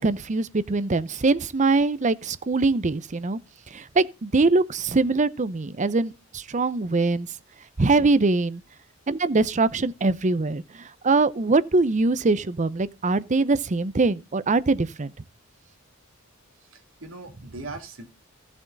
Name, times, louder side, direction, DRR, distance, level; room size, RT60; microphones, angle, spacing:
voice 1, 0.0-3.4 3.7-7.3 7.8-8.6 9.1-15.1, right 3 dB, 35° right, 0.6 m, -23 dB
voice 2, 16.6-18.0, right 2 dB, 70° right, 2.8 m, -40 dB
14.5 x 7.2 x 4.0 m
head